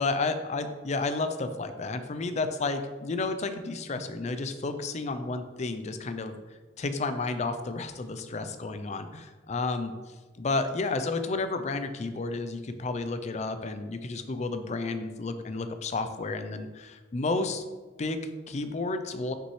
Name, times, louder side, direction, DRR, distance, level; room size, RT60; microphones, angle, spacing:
voice 1, 0.0-6.4 6.8-9.9 10.3-17.6 18.0-19.3, left 3 dB, 40° left, 9 dB, 0.4 m, -31 dB
6.1 x 5.5 x 3.1 m, 1.3 s
head